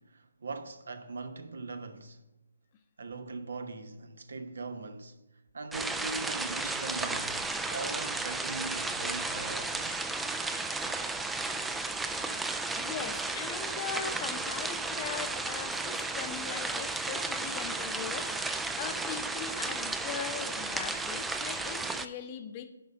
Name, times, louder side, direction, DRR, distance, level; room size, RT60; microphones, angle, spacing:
voice 1, 0.0-2.2 3.0-5.2 5.5-7.4 7.7-10.0, right 3 dB, 65° right, 1.0 m, -40 dB
sound 1, 5.7-22.1, right 3 dB, 5° right, 0.4 m, -34 dB
voice 2, 12.7-22.7, left 8 dB, 30° left, 0.7 m, -40 dB
10.5 x 5.5 x 5.3 m
figure-of-eight pair, 145°, 0 cm